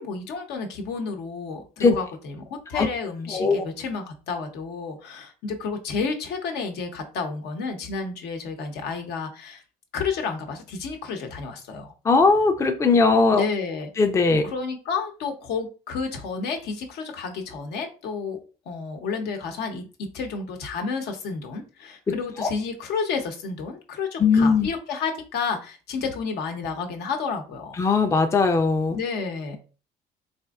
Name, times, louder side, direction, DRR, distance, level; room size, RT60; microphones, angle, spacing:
voice 1, 0.0-9.6 9.9-11.9 13.3-13.9 14.4-18.4 18.7-27.8 28.9-29.6, left 5 dB, 75° left, 4 dB, 0.8 m, -31 dB
voice 2, 3.3-3.6 12.1-13.5 14.0-14.5 22.1-22.5 24.2-24.7 27.8-29.0, left 4 dB, 15° left, 6 dB, 0.4 m, -19 dB
4.3 x 2.5 x 2.3 m, 0.35 s
cardioid pair, 110°, 17 cm